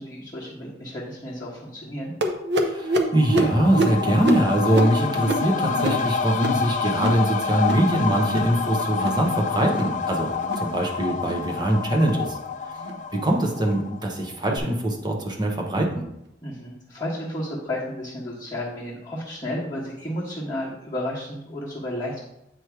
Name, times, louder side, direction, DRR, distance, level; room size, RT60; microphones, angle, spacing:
voice 1, 0.0-2.1 16.4-22.2, left 1 dB, 20° left, -11 dB, 1.4 m, -32 dB
sound 1, 2.2-7.3 7.5-7.9 8.2-8.6 8.9-9.3 9.6-10.0 10.4-10.7 11.2-11.4 12.0-12.2 12.8-13.0 13.6-13.8 14.5-14.6 15.4-15.5, right 2 dB, 65° right, 0.7 m, -27 dB
voice 2, 2.6-12.4 13.1-16.0, right 1 dB, 25° right, 0 dB, 1.0 m, -23 dB
sound 2, 2.8-14.2 14.6-14.7, left 5 dB, 40° left, 0.4 m, -28 dB
8.1 x 3.2 x 4.7 m, 0.84 s
head